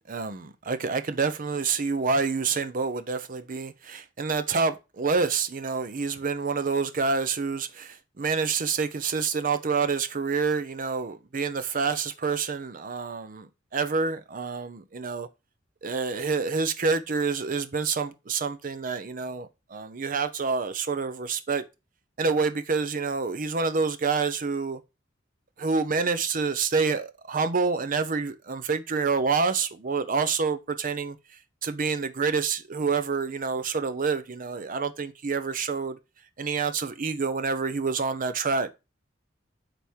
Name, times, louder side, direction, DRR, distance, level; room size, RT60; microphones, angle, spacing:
voice 1, 0.1-15.3 15.8-21.6 22.2-24.8 25.6-31.2 31.6-36.0 36.4-38.7, right 4 dB, 45° right, 0.6 m, -27 dB
9.0 x 3.5 x 4.4 m
head